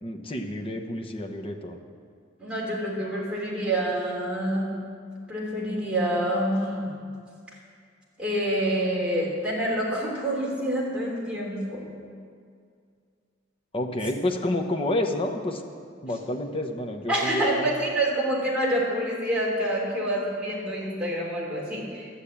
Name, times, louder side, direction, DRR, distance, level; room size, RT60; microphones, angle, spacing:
voice 1, 0.0-1.8 13.7-15.6 16.0-17.7, left 1 dB, 25° left, 2 dB, 1.0 m, -29 dB
voice 2, 2.4-4.7 5.3-6.9 8.2-11.8 17.1-22.1, right 1 dB, 5° right, -5 dB, 3.1 m, -27 dB
12.0 x 7.4 x 8.5 m, 2.2 s
head